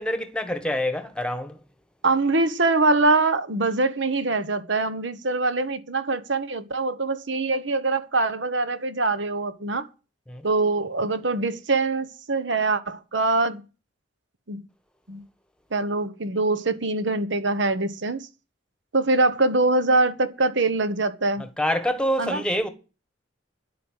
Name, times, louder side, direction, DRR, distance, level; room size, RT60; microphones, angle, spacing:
voice 1, 0.0-1.6 10.3-10.4 21.4-22.7, equal, 5° left, 1.4 m, -26 dB
voice 2, 2.0-9.9 10.4-13.6 14.5-14.6 15.1-15.2 15.7-18.3 18.9-21.5 22.2-22.4, right 3 dB, 65° right, 1.2 m, -23 dB
10.5 x 8.3 x 9.0 m
head